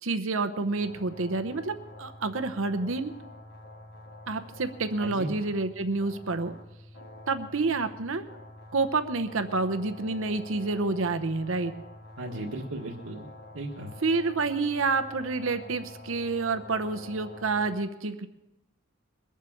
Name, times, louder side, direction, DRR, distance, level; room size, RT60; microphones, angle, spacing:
voice 1, 0.0-3.1 4.3-6.5 7.3-8.3 8.7-11.7 14.0-18.3, right 3 dB, 65° right, 9 dB, 0.8 m, -28 dB
sound 1, 0.6-17.7, left 1 dB, 55° left, 2.0 m, -47 dB
voice 2, 5.0-5.3 12.2-13.3 13.5-13.9, right 1 dB, 80° right, -5 dB, 1.7 m, -36 dB
21.5 x 7.3 x 7.2 m, 0.99 s
head